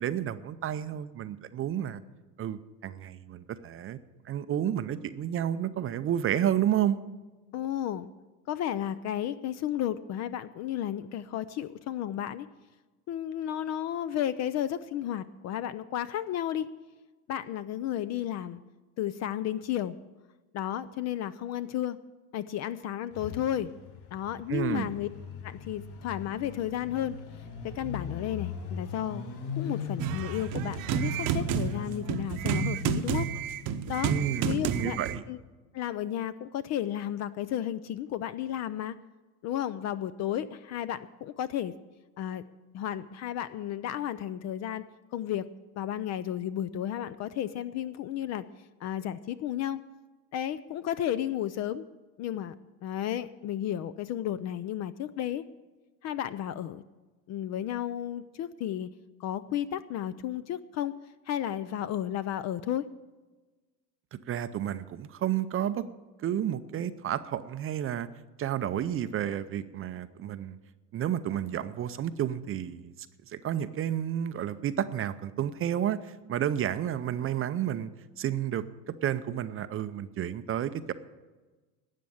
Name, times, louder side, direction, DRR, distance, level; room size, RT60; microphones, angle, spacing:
voice 1, 0.0-2.0 2.4-4.0 4.2-7.0 24.5-24.9 34.1-35.2 64.1-65.8 66.2-68.1 68.4-70.6 70.9-72.9 73.3-77.9 78.2-78.6 79.0-80.9, right 10 dB, 30° right, 12 dB, 0.5 m, -31 dB
voice 2, 7.5-8.1 8.5-12.5 13.1-16.7 17.3-18.6 19.0-20.0 20.5-22.0 22.3-23.7 24.1-25.1 25.4-27.2 27.6-29.3 29.5-33.3 33.9-34.1 34.4-35.0 35.3-35.4 35.7-39.0 39.4-41.7 42.2-42.4 42.7-44.8 45.1-45.5 45.8-48.5 48.8-49.8 50.3-51.8 52.2-52.6 52.8-55.4 56.0-56.8 57.3-58.9 59.2-60.9 61.3-62.8, left 11 dB, 35° left, 14 dB, 0.4 m, -33 dB
sound 1, 23.1-32.0, left 6 dB, 55° left, 5.0 m, -40 dB
sound 2, 30.0-35.2, right 8 dB, 45° right, 0.9 m, -30 dB
12.5 x 8.4 x 7.8 m, 1.2 s
supercardioid pair, 105°, 48 cm